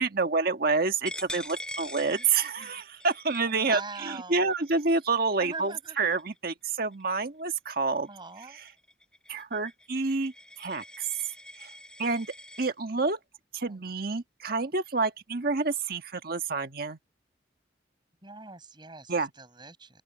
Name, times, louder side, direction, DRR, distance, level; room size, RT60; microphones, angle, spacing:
voice 1, 0.0-8.1 9.3-10.8 11.6-11.7 12.0-12.3 12.6-13.2 13.5-17.0 19.1-19.3, right 4 dB, 55° right, 1.5 m, -28 dB
Coin (dropping), 1.1-6.5 6.9-7.2 7.6-12.7, left 1 dB, 5° left, 4.2 m, -45 dB
voice 2, 3.5-4.5 5.4-6.0 8.1-8.6 13.6-13.9 18.2-20.0, right 3 dB, 25° right, 6.1 m, -43 dB
open air
head